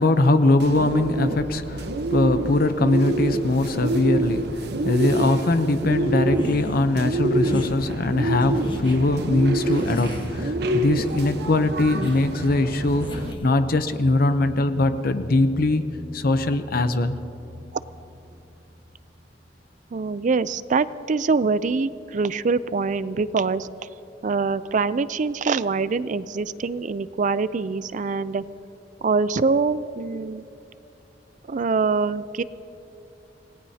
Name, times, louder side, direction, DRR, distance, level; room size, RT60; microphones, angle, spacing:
voice 1, 0.0-15.8 16.1-17.2, left 2 dB, 55° left, 10 dB, 0.7 m, -21 dB
Bird, 0.6-13.3, right 1 dB, 65° right, 1.0 m, -27 dB
sound 1, 6.2-6.9 7.4-7.8 8.4-9.0 9.6-10.6 11.0-11.4 12.0-12.3 13.0-13.6, left 1 dB, 25° left, 1.3 m, -37 dB
sound 2, 6.2-19.4, equal, 15° right, 2.3 m, -40 dB
voice 2, 19.9-23.7 24.2-28.4 29.0-30.4 31.5-32.4, right 4 dB, 45° right, 16 dB, 0.4 m, -24 dB
27.5 x 18.5 x 2.8 m, 2.9 s
head